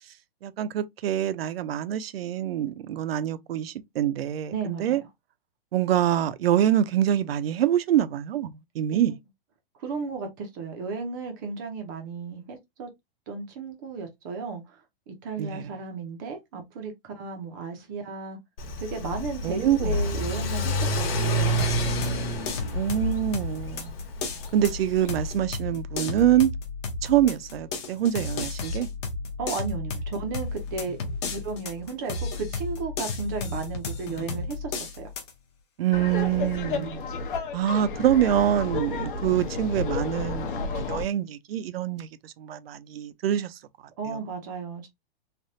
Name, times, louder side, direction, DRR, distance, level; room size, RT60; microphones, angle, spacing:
voice 1, 0.4-5.0 5.7-9.2 15.4-15.7 19.4-20.0 22.7-23.9 24.5-26.5 27.0-28.9 35.8-36.9 37.5-43.6 44.1-44.2, right 11 dB, 75° right, 0.5 m, -25 dB
voice 2, 4.5-5.0 8.9-9.2 9.8-12.9 13.3-14.8 15.1-18.4 18.8-21.7 29.4-31.0 31.3-35.1 36.7-37.0 44.0-44.9, right 4 dB, 20° right, 0.4 m, -34 dB
Car / Accelerating revving vroom, 18.6-25.3, equal, 75° left, 1.1 m, -29 dB
sound 1, 21.6-35.3, left 4 dB, 30° left, 0.6 m, -33 dB
Laughter, 35.9-41.0, left 4 dB, 60° left, 0.8 m, -31 dB
3.3 x 2.1 x 2.6 m
hypercardioid pair, 165°, 30 cm